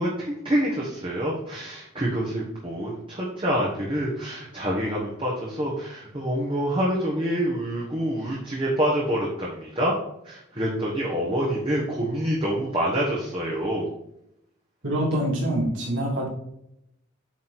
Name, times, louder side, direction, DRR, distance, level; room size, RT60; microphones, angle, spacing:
voice 1, 0.0-9.9 10.2-13.9, equal, 25° right, -4 dB, 1.4 m, -26 dB
voice 2, 14.8-16.3, right 1 dB, 60° right, -3 dB, 2.6 m, -25 dB
8.6 x 4.2 x 4.2 m, 0.79 s
head